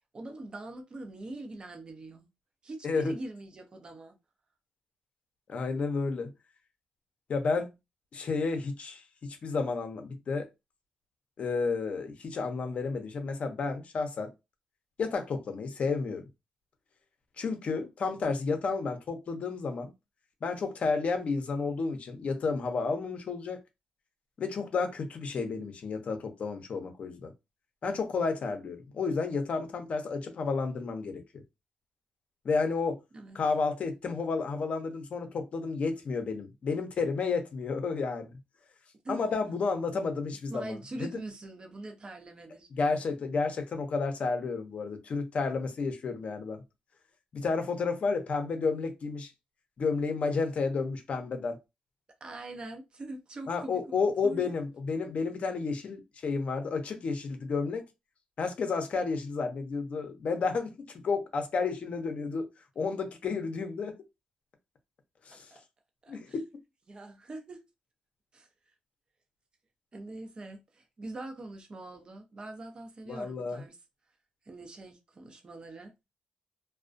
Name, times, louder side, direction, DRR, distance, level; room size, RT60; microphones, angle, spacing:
voice 1, 0.1-2.3 2.6-4.2 33.1-33.4 39.0-39.2 40.5-42.7 52.2-53.9 54.2-54.4 65.5-65.6 66.0-66.4 66.9-67.6 68.3-68.5 69.9-73.8 74.5-75.9, right 2 dB, 35° right, 0.6 m, -43 dB
voice 2, 5.5-6.3 7.3-7.7 8.1-10.5 11.4-14.3 15.0-16.2 17.4-19.9 20.4-23.6 24.4-27.3 27.8-31.2 32.4-33.0 33.3-38.3 39.1-41.2 42.7-46.6 47.3-49.3 49.8-51.6 53.5-57.8 58.4-62.5 62.8-63.9 65.3-65.5 66.1-66.3 73.1-73.6, left 4 dB, 55° left, 0.6 m, -31 dB
2.3 x 2.1 x 2.5 m
cardioid pair, 85°, 3 cm